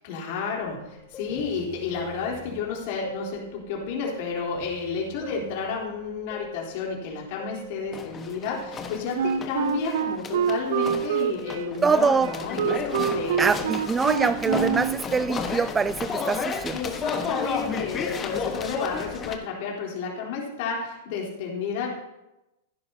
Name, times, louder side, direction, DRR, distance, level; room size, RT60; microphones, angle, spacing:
voice 1, 0.0-13.7 16.7-21.9, left 5 dB, 55° left, -2 dB, 3.6 m, -31 dB
sound 1, 0.6-0.7 1.1-2.8 3.0-3.8 4.1-5.9 6.3-7.0 7.4-19.4, left 5 dB, 25° left, 1.4 m, -34 dB
Wind instrument woodwind instrument, 9.1-15.0, right 8 dB, 65° right, 0.7 m, -26 dB
voice 2, 11.8-12.3 13.4-16.8, right 5 dB, 15° right, 17 dB, 0.3 m, -24 dB
16.0 x 10.5 x 2.9 m, 0.93 s
hypercardioid pair, 105°, 0 cm